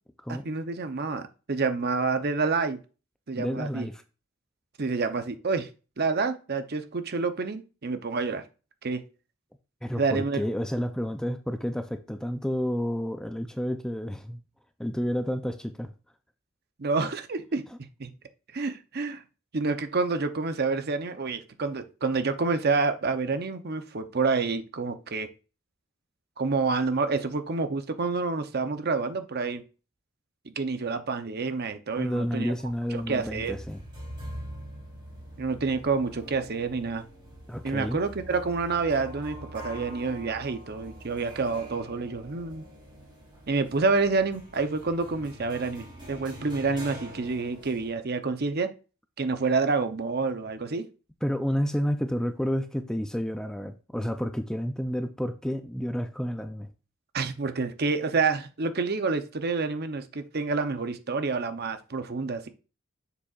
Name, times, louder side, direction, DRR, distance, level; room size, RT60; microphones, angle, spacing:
voice 1, 0.3-2.8 3.3-3.9 4.8-5.7 6.0-8.4 8.8-9.0 9.9-10.4 16.8-18.1 18.5-19.2 19.5-25.3 26.4-29.6 30.6-32.5 33.1-33.6 35.4-37.0 37.6-42.7 43.5-48.7 49.2-50.8 57.1-62.5, right 4 dB, 50° right, 0.7 m, -28 dB
voice 2, 3.3-4.0 9.8-14.4 14.8-15.9 32.0-33.8 37.5-38.0 51.2-56.7, equal, 5° left, 0.4 m, -30 dB
sound 1, 32.1-47.9, equal, 20° right, 2.7 m, -44 dB
7.3 x 6.9 x 2.4 m
head